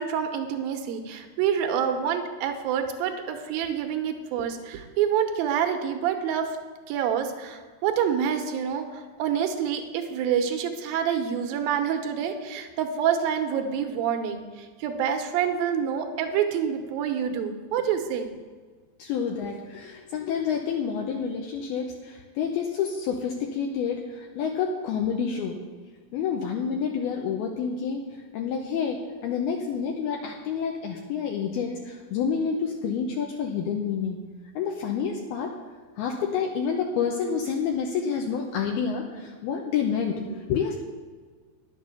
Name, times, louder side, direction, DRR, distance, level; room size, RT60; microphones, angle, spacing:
voice 1, 0.0-6.6 6.9-18.3, right 8 dB, 70° right, 6 dB, 2.5 m, -27 dB
voice 2, 19.0-25.6 26.1-28.1 28.3-34.2 34.6-35.6 36.0-40.8, left 6 dB, 75° left, 1 dB, 2.6 m, -28 dB
11.0 x 7.5 x 7.2 m, 1.5 s
omnidirectional pair, 4.8 m